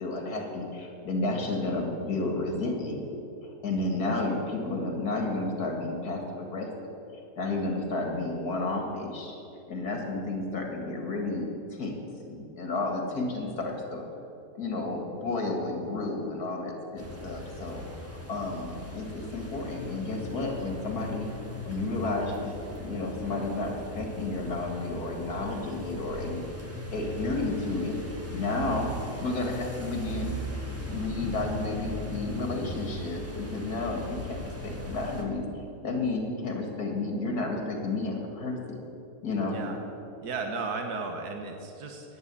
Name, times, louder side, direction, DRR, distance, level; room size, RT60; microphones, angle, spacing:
voice 1, 0.0-3.0 3.4-6.7 7.4-9.4 9.7-11.9 12.3-14.0 14.5-21.3 21.6-22.5 22.8-26.4 26.9-28.0 28.3-30.4 30.8-35.4 35.8-38.8 39.2-39.6, left 2 dB, 85° left, 2 dB, 2.7 m, -31 dB
sound 1, 17.0-35.2, equal, 10° right, 1.6 m, -39 dB
voice 2, 40.2-42.2, right 4 dB, 90° right, 4 dB, 1.6 m, -35 dB
11.0 x 9.3 x 9.7 m, 2.8 s
omnidirectional pair, 1.6 m